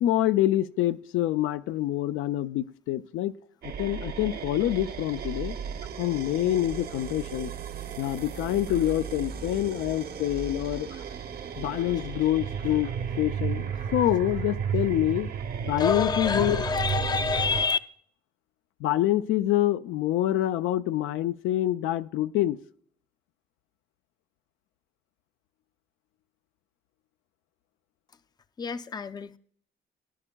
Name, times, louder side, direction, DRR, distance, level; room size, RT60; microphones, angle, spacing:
voice 1, 0.0-3.3 3.6-5.5 6.0-7.5 8.0-11.0 11.6-12.9 13.2-15.3 15.6-16.6 18.8-22.6, left 13 dB, 90° left, 0.4 m, -26 dB
sound 1, 3.6-17.7, right 7 dB, 50° right, 0.7 m, -34 dB
voice 2, 15.8-17.8 28.6-29.4, left 5 dB, 20° left, 0.4 m, -27 dB
17.5 x 9.9 x 2.3 m
cardioid pair, 90°, 20 cm